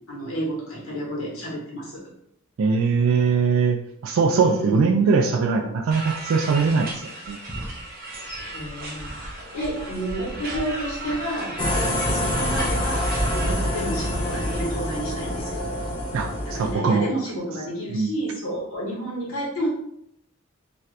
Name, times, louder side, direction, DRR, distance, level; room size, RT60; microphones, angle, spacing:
voice 1, 0.1-2.0 4.3-4.9 8.2-9.1 9.5-15.6 16.4-19.7, right 1 dB, 70° left, -4 dB, 1.2 m, -30 dB
voice 2, 2.6-3.8 4.0-7.4 16.1-17.1 17.9-18.1, right 5 dB, 65° right, 2 dB, 0.3 m, -21 dB
sound 1, 5.9-14.6, right 1 dB, 45° right, 0.7 m, -34 dB
sound 2, 11.6-16.7, left 1 dB, 25° left, 0.4 m, -26 dB
2.8 x 2.4 x 3.2 m, 0.76 s
head